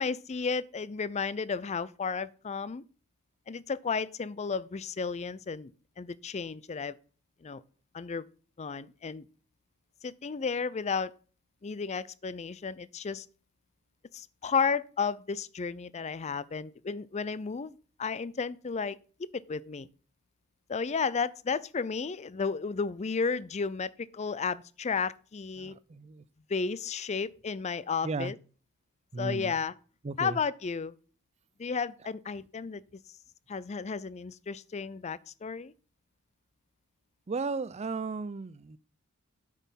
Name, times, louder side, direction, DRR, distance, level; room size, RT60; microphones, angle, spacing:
voice 1, 0.0-2.8 3.5-7.0 7.4-7.6 7.9-8.3 8.6-9.2 10.0-11.1 11.6-13.3 14.1-19.0 19.3-19.9 20.7-25.7 26.5-28.3 29.2-29.7 30.2-30.9 31.6-33.0 33.5-35.7, left 5 dB, 30° left, 0.4 m, -33 dB
voice 2, 25.6-26.3 28.0-28.3 29.1-29.5 30.0-30.4 37.3-38.8, right 4 dB, 30° right, 0.4 m, -35 dB
9.1 x 6.3 x 5.6 m
head